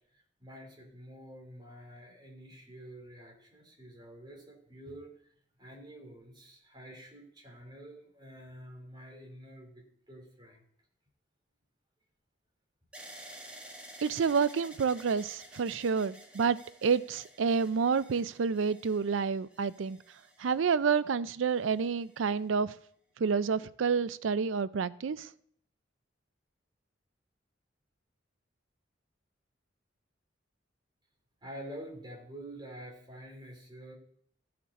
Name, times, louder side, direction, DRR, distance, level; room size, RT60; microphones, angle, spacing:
voice 1, 0.4-5.3 5.6-10.6 31.4-34.0, right 1 dB, 25° right, -1 dB, 2.9 m, -48 dB
sound 1, 12.9-20.9 21.6-22.3, right 1 dB, 5° right, 1.7 m, -52 dB
voice 2, 14.0-20.0 20.4-22.8 23.2-25.3, right 5 dB, 85° right, 17 dB, 0.4 m, -29 dB
15.0 x 5.9 x 4.1 m, 0.64 s
head